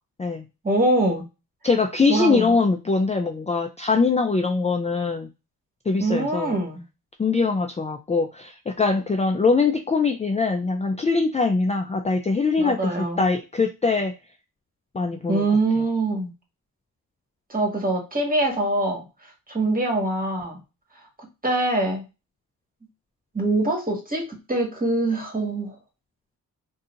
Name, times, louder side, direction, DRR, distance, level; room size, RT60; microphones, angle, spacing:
voice 1, 0.6-1.2 2.1-2.6 6.0-6.8 12.6-13.2 15.3-16.3 17.5-20.6 21.4-22.0 23.3-25.8, right 2 dB, 25° right, 0 dB, 1.9 m, -24 dB
voice 2, 1.6-5.3 5.9-6.6 7.2-14.1 14.9-15.4, left 4 dB, 20° left, 6 dB, 0.4 m, -22 dB
3.9 x 2.8 x 2.5 m, 0.28 s
cardioid pair, 60°, 35 cm